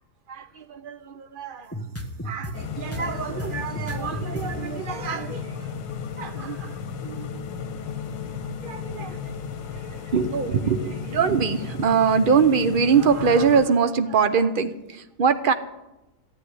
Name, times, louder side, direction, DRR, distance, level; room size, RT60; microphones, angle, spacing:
voice 1, 0.3-1.7 2.2-5.5 6.2-6.7 7.0-7.5 8.6-9.2 10.1-15.5, right 6 dB, 80° right, 9 dB, 0.4 m, -23 dB
sound 1, 1.7-2.6 2.8-5.1 5.6-5.7 5.9-7.3, equal, 10° left, 1.3 m, -34 dB
sound 2, 2.5-13.7, left 6 dB, 80° left, 1.8 m, -34 dB
14.0 x 9.0 x 10.0 m, 0.98 s
omnidirectional pair, 2.0 m